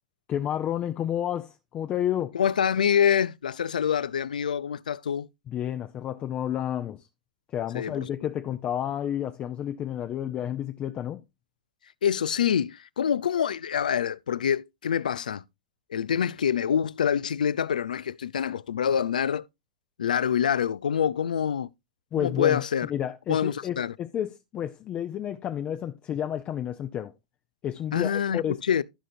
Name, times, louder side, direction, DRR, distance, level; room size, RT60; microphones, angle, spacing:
voice 1, 0.3-2.3 5.5-7.1 7.5-11.2 22.1-22.6 22.9-27.1 27.6-28.6, left 10 dB, 30° left, 0.6 m, -30 dB
voice 2, 2.3-5.3 7.7-8.1 12.0-15.4 15.9-19.4 20.0-21.7 22.2-22.9 23.3-23.9 27.9-28.8, left 8 dB, 80° left, 0.5 m, -26 dB
15.0 x 5.1 x 2.7 m
hypercardioid pair, 110°, 4 cm